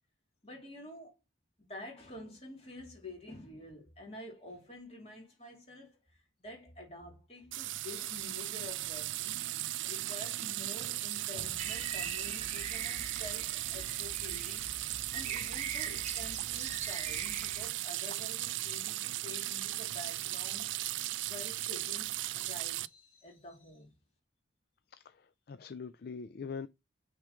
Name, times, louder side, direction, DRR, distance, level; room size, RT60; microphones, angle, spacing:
voice 1, 0.4-1.1 1.6-24.0, left 2 dB, 30° left, 2.4 m, -49 dB
sound 1, 7.5-22.9, right 16 dB, 70° right, 0.3 m, -37 dB
sound 2, 11.6-17.7, right 6 dB, 35° right, 0.8 m, -43 dB
voice 2, 25.0-26.7, left 5 dB, 50° left, 0.4 m, -43 dB
5.9 x 3.7 x 5.0 m
head